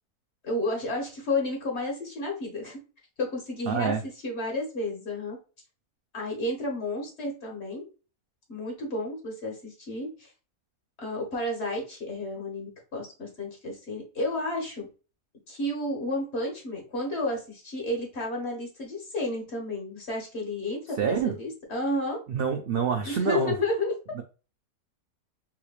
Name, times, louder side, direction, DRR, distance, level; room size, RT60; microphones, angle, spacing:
voice 1, 0.4-2.8 3.2-3.9 4.2-5.4 6.1-7.8 8.5-10.3 11.0-14.9 15.5-22.2 23.0-23.9, left 2 dB, 50° left, -1 dB, 1.5 m, -31 dB
voice 2, 3.7-4.0 21.0-21.3 22.3-23.5 24.2-24.3, right 6 dB, 75° right, 4 dB, 0.5 m, -26 dB
4.0 x 3.1 x 2.3 m, 0.33 s
omnidirectional pair, 1.5 m